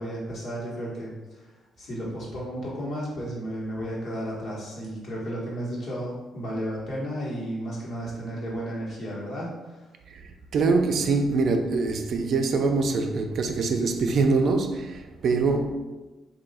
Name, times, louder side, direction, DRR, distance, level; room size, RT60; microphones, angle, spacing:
voice 1, 0.0-1.5 1.8-9.9, equal, 55° left, 1.4 m, -33 dB
voice 2, 10.1-15.8, right 4 dB, 60° right, 0.4 m, -24 dB
3.1 x 2.7 x 4.1 m
cardioid pair, 90°, 0 cm